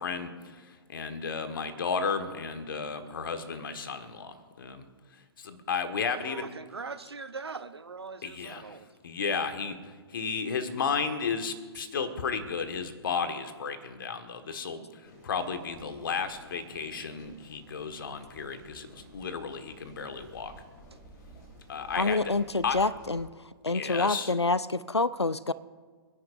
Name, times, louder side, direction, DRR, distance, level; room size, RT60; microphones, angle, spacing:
voice 1, 0.0-4.8 5.4-6.5 8.2-8.8 9.0-20.5 21.7-22.3 22.6-22.8 23.7-24.3, left 5 dB, 55° left, 1.6 m, -33 dB
voice 2, 6.2-9.0 20.9-21.0, right 4 dB, 75° right, 0.9 m, -41 dB
sound 1, 15.0-23.3, right 1 dB, 35° left, 4.9 m, -53 dB
voice 3, 21.9-23.3 23.6-25.5, left 3 dB, 90° left, 0.5 m, -27 dB
26.5 x 11.0 x 2.6 m
figure-of-eight pair, 120°, 14 cm